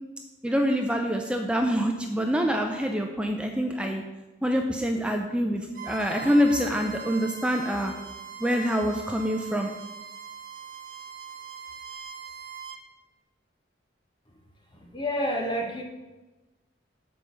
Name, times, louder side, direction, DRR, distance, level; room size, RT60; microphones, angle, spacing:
voice 1, 0.4-4.0 4.4-7.9 8.4-9.7, equal, 5° right, 3 dB, 0.4 m, -25 dB
Bowed string instrument, 5.7-12.8, right 6 dB, 45° right, 0.7 m, -41 dB
voice 2, 14.7-15.8, equal, 25° left, 1 dB, 1.1 m, -29 dB
6.1 x 4.9 x 6.6 m, 1.1 s
head